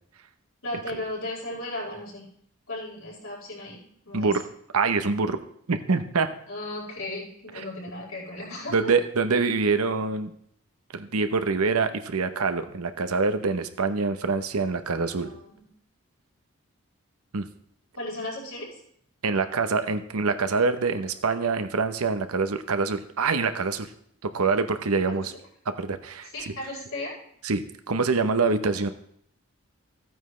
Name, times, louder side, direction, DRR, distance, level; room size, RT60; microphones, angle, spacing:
voice 1, 0.6-2.2 2.7-4.3 6.5-8.9 15.2-15.5 17.9-18.7 24.4-24.5 25.1-25.4 26.3-27.1 28.8-28.9, left 1 dB, 70° left, -4 dB, 4.5 m, -36 dB
voice 2, 4.1-4.4 4.7-5.4 5.7-6.3 7.6-7.7 8.7-10.3 10.9-15.3 17.3-17.5 19.2-23.9 24.2-25.3 25.7-26.3 27.4-28.9, right 4 dB, 85° right, 9 dB, 0.9 m, -25 dB
14.5 x 9.1 x 3.2 m, 0.66 s
head